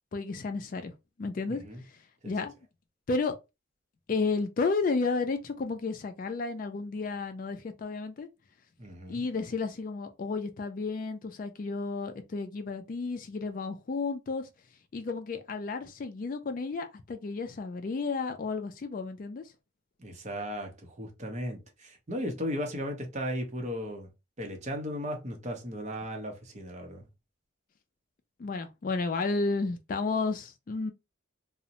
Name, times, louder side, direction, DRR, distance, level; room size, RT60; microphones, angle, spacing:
voice 1, 0.1-0.9 1.2-1.9 2.3-2.5 3.1-3.3 4.1-8.3 9.1-14.5 14.9-19.5 28.4-30.9, left 4 dB, 45° left, 0.3 m, -32 dB
voice 2, 1.5-1.8 2.2-2.3 8.8-9.2 20.0-24.1 24.4-27.1, equal, 35° right, 0.6 m, -36 dB
2.5 x 2.0 x 2.8 m
head